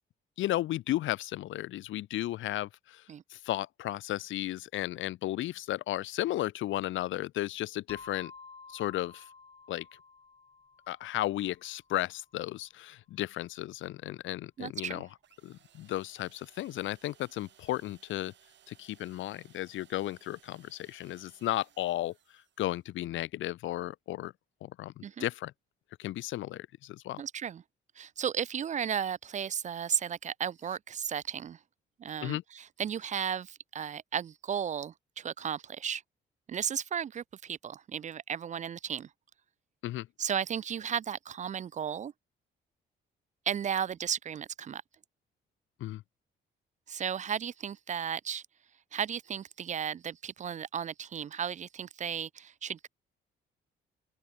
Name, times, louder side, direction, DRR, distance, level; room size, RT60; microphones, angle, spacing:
voice 1, 0.4-3.0 3.3-8.3 8.7-9.2 9.7-9.9 10.9-15.1 15.4-18.3 18.7-22.1 22.6-24.3 24.6-25.5 26.0-27.2 32.2-32.4 39.8-40.1 45.8-46.0, left 15 dB, 75° left, 0.7 m, -34 dB
sound 1, 7.9-12.3, left 4 dB, 30° left, 6.3 m, -52 dB
voice 2, 14.6-15.0 25.0-25.3 27.2-27.6 28.0-31.6 32.0-36.0 36.5-39.1 40.2-42.1 43.5-44.8 46.9-48.4 48.9-52.9, right 8 dB, 40° right, 0.4 m, -34 dB
sound 2, 15.2-22.8, right 10 dB, 65° right, 4.0 m, -63 dB
open air
cardioid pair, 90°, 20 cm